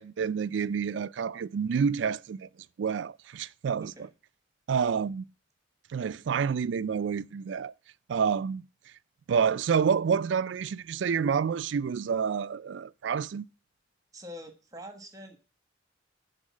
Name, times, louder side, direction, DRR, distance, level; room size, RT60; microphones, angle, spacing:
voice 1, 0.0-2.5 2.8-4.1 4.7-5.2 5.9-7.7 8.1-8.7 9.3-13.5, right 6 dB, 70° right, 0.3 m, -28 dB
voice 2, 14.1-15.4, equal, 20° right, 1.3 m, -45 dB
10.0 x 4.0 x 7.5 m
head